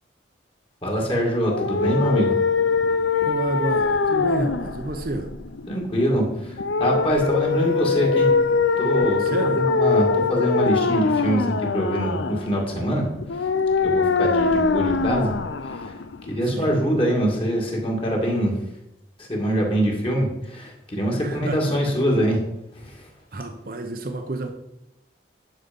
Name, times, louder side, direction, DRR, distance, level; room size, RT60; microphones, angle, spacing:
voice 1, 0.8-2.4 5.7-8.3 8.8-13.5 13.8-15.3 15.6-16.0 16.3-18.6 19.2-22.4 22.7-23.1, equal, 30° left, 0 dB, 2.4 m, -24 dB
sound 1, 1.5-16.4, left 4 dB, 90° left, 0.6 m, -23 dB
voice 2, 3.2-5.4 9.2-9.6 16.4-16.7 21.2-21.8 23.3-24.5, right 1 dB, 50° right, 5 dB, 0.9 m, -30 dB
10.5 x 6.6 x 5.4 m, 0.87 s
head